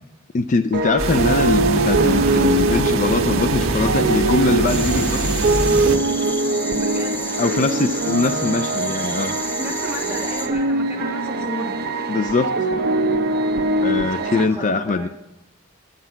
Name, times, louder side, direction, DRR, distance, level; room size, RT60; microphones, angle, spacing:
voice 1, 0.3-5.2 7.4-9.4 12.1-12.7 13.8-15.1, left 3 dB, 40° left, 10 dB, 0.4 m, -22 dB
sound 1, 0.7-14.4, right 3 dB, 50° right, 0.8 m, -22 dB
sound 2, 1.0-6.0, right 2 dB, 75° right, 1.1 m, -23 dB
sound 3, 4.7-10.5, left 1 dB, 10° left, 1.0 m, -31 dB
voice 2, 6.7-7.3 9.6-11.7 14.3-15.1, right 1 dB, 15° right, -4 dB, 2.2 m, -33 dB
9.8 x 8.2 x 5.7 m, 0.91 s
head